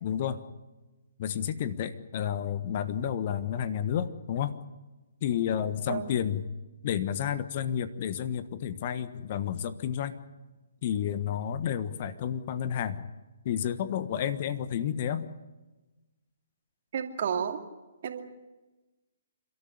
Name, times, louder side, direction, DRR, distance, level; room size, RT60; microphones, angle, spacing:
voice 1, 0.0-0.4 1.2-4.6 5.2-6.5 6.8-10.2 10.8-13.0 13.4-15.3, left 9 dB, 40° left, 13 dB, 1.3 m, -31 dB
voice 2, 16.9-17.6 18.0-18.2, right 7 dB, 45° right, 5 dB, 2.5 m, -31 dB
30.0 x 13.5 x 9.9 m, 1.1 s
figure-of-eight pair, 130°, 0 cm